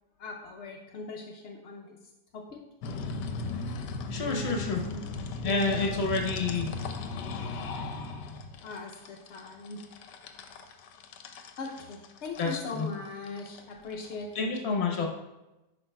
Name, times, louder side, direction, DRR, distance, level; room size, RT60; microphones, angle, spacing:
voice 1, 0.2-2.0 2.3-2.6 4.2-5.1 5.4-6.1 8.6-9.8 11.6-15.1, left 3 dB, 65° left, 0 dB, 0.7 m, -40 dB
sound 1, 2.8-14.4, left 4 dB, 85° left, 1.2 m, -37 dB
voice 2, 4.1-4.8 5.4-6.7 12.4-12.5 12.8-12.9 14.3-15.1, left 3 dB, 45° left, 2 dB, 1.0 m, -28 dB
10.5 x 4.8 x 2.2 m, 0.99 s
omnidirectional pair, 1.8 m